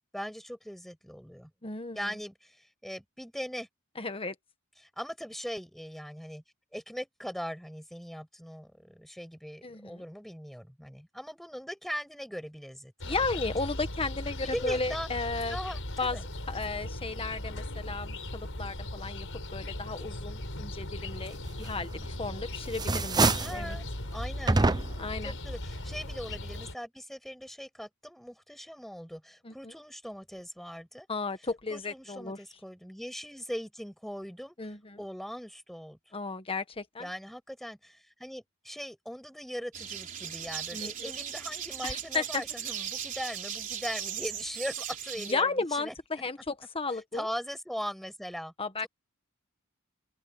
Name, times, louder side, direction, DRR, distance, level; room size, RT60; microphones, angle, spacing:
voice 1, 0.1-1.5 1.9-3.7 4.8-6.4 6.7-13.2 14.5-15.1 15.5-16.2 23.4-23.8 24.1-24.6 25.2-31.1 31.7-36.0 37.0-45.9 46.9-48.5 48.8-48.9, equal, ahead, 6.2 m, -40 dB
voice 2, 1.6-2.0 4.0-4.3 9.6-10.0 13.0-15.6 16.0-16.2 16.5-19.3 19.5-23.8 25.0-25.3 29.4-29.7 31.1-32.4 34.6-35.0 36.1-37.1 40.7-41.1 41.8-42.4 45.2-47.3 48.6-48.9, left 3 dB, 25° left, 1.6 m, -34 dB
sound 1, 13.0-26.7, left 1 dB, 65° left, 7.3 m, -38 dB
sound 2, 21.9-22.3 22.7-23.6 24.5-25.1, right 3 dB, 20° right, 0.7 m, -26 dB
sound 3, 39.7-45.3, right 8 dB, 40° right, 3.5 m, -38 dB
open air
head